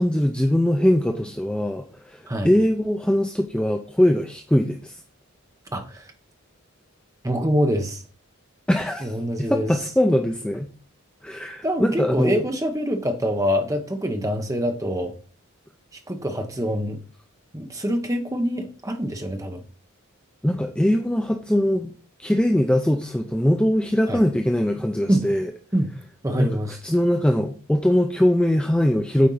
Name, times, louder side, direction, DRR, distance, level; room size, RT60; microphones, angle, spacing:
voice 1, 0.0-5.0 8.7-10.7 11.2-12.4 20.4-21.9 22.2-25.5 26.3-26.5 26.8-29.3, left 1 dB, 5° left, 4 dB, 0.4 m, -21 dB
voice 2, 5.7-6.1 7.2-8.0 9.0-9.7 11.6-15.1 16.1-17.0 17.5-19.6 24.1-24.2 25.1-25.3 25.7-25.9 26.2-26.8, equal, 15° right, 5 dB, 0.8 m, -25 dB
8.4 x 4.4 x 4.0 m, 0.40 s
head